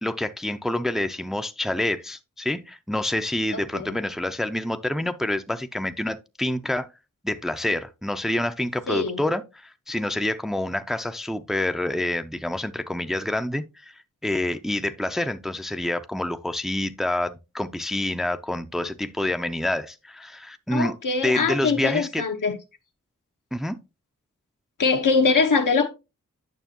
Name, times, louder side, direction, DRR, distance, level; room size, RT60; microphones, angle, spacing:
voice 1, 0.0-6.9 7.2-13.9 14.2-20.9 21.2-22.2 23.5-23.8, left 1 dB, ahead, 0.5 m, -27 dB
voice 2, 3.5-4.0 8.9-9.2 20.7-22.6 24.8-25.9, left 4 dB, 80° left, 1.2 m, -23 dB
9.3 x 6.2 x 2.9 m
wide cardioid pair, 75°, 31 cm